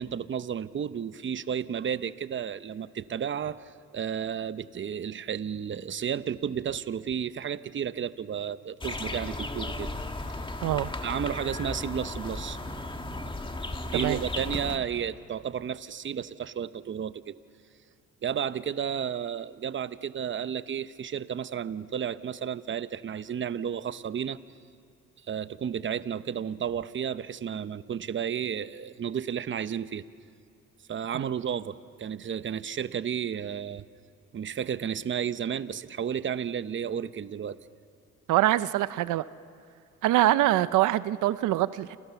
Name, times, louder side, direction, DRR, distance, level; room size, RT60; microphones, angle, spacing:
voice 1, 0.0-3.6 3.9-9.9 11.0-13.3 13.8-17.4 18.2-24.4 25.3-30.0 30.9-33.8 34.3-37.6, right 8 dB, 40° right, 14 dB, 0.8 m, -32 dB
sound 1, 8.8-14.8, left 2 dB, 15° left, 1.9 m, -35 dB
voice 2, 38.3-39.2 40.0-42.0, right 15 dB, 85° right, 15 dB, 0.6 m, -24 dB
28.5 x 28.5 x 7.0 m, 2.5 s
cardioid pair, 90°, 30 cm